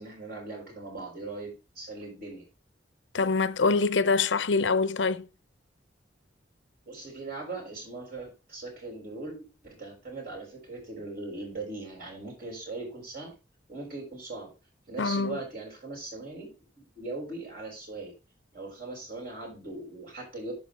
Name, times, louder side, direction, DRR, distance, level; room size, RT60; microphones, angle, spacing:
voice 1, 0.0-2.4 6.9-13.3 13.7-14.5 14.9-18.1 18.5-20.6, right 3 dB, 55° right, 6.4 m, -40 dB
voice 2, 3.1-5.3 15.0-15.4, left 4 dB, 85° left, 0.7 m, -25 dB
11.0 x 5.0 x 5.5 m
head